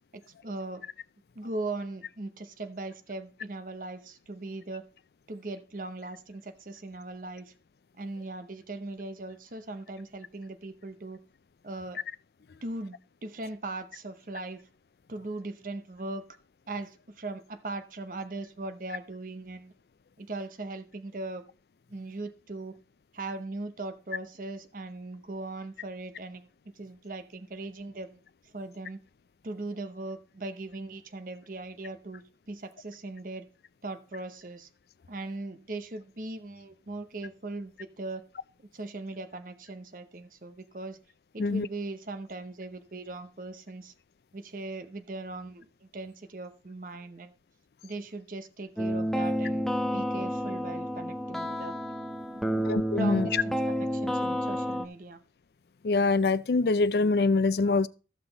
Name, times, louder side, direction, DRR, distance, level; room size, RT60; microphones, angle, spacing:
voice 1, 0.1-0.8 1.4-4.8 5.3-7.5 8.0-11.2 11.6-12.0 12.6-14.6 15.1-16.3 16.7-19.7 20.2-21.4 21.9-22.8 23.1-26.5 26.8-29.0 29.4-33.5 33.8-34.7 35.1-38.2 38.7-41.0 41.3-43.9 44.3-47.4 47.8-51.7 52.3-52.6 53.0-55.2, right 2 dB, 50° right, 0.7 m, -39 dB
sound 1, 48.8-54.9, equal, ahead, 0.6 m, -30 dB
voice 2, 52.7-53.4 55.8-57.9, left 3 dB, 65° left, 0.4 m, -24 dB
14.0 x 5.9 x 4.0 m
head